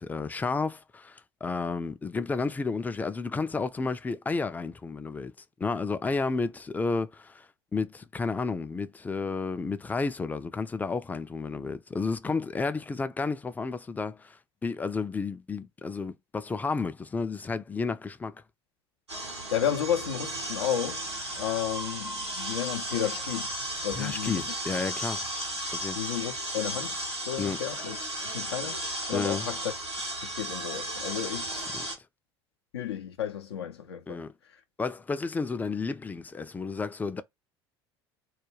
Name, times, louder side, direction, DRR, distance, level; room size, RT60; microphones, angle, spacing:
voice 1, 0.0-5.3 5.6-7.5 7.7-18.3 23.9-25.3 25.7-26.0 27.4-27.6 29.1-29.5 31.5-31.8 34.1-34.3 34.8-37.2, left 4 dB, 10° left, 0.3 m, -32 dB
sound 1, 19.1-32.0, right 1 dB, 90° right, 0.8 m, -35 dB
voice 2, 19.5-21.0 21.3-23.5 23.8-24.5 26.0-27.0 27.3-28.0 28.3-28.8 29.1-29.7 30.2-31.5 32.7-34.2, left 9 dB, 75° left, 0.5 m, -32 dB
2.4 x 2.2 x 2.9 m
figure-of-eight pair, 65°, 14 cm